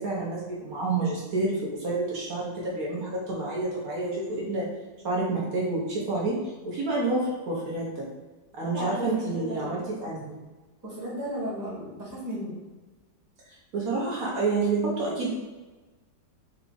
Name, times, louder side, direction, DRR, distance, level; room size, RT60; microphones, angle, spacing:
voice 1, 0.0-4.7 5.0-6.4 6.6-8.0 8.6-10.3 13.7-15.3, right 3 dB, 60° right, -5 dB, 1.3 m, -28 dB
voice 2, 8.7-9.9 10.8-12.5, equal, 10° right, -6 dB, 1.1 m, -34 dB
4.6 x 2.3 x 3.8 m, 1.2 s
omnidirectional pair, 1.9 m